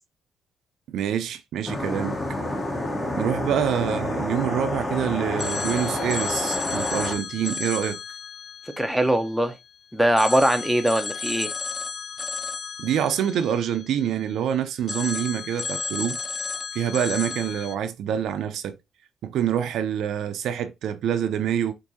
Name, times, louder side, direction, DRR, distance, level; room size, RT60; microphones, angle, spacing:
voice 1, 0.9-2.2 3.1-8.0 12.8-16.2 16.7-18.7 19.2-21.7, right 9 dB, 75° right, 0.5 m, -26 dB
sound 1, 1.7-7.2, left 1 dB, 20° left, 1.0 m, -28 dB
Telephone, 5.4-9.7 10.2-14.4 14.9-17.8, left 4 dB, 45° left, 0.3 m, -33 dB
voice 2, 8.8-9.5 9.9-11.5, right 1 dB, ahead, 0.6 m, -21 dB
4.5 x 2.6 x 2.6 m
cardioid pair, 90°, 0 cm